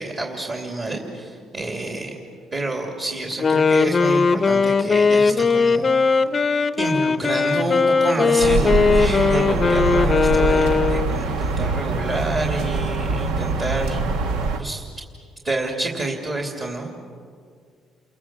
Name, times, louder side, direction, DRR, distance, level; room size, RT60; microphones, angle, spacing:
voice 1, 0.0-2.1 2.5-5.9 6.4-14.3 14.6-14.8 15.4-16.9, right 2 dB, 30° right, 0 dB, 2.8 m, -28 dB
Wind instrument woodwind instrument, 3.3-11.2, left 4 dB, 25° left, 0.7 m, -19 dB
sound 1, 8.4-14.6, right 3 dB, 90° right, 1.5 m, -23 dB
29.0 x 23.0 x 7.4 m, 2.1 s
cardioid pair, 140°, 0 cm